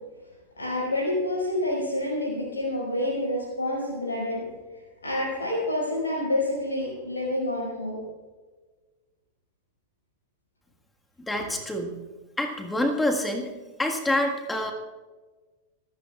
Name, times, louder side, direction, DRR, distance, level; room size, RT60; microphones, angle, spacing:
voice 1, 0.6-4.4 5.0-8.0 11.3-11.4, left 1 dB, 75° left, -4 dB, 5.5 m, -28 dB
voice 2, 11.3-12.0 12.4-13.5 13.8-14.7, left 1 dB, 10° left, 3 dB, 1.6 m, -26 dB
25.0 x 13.5 x 2.4 m, 1.3 s
figure-of-eight pair, 90°, 0 cm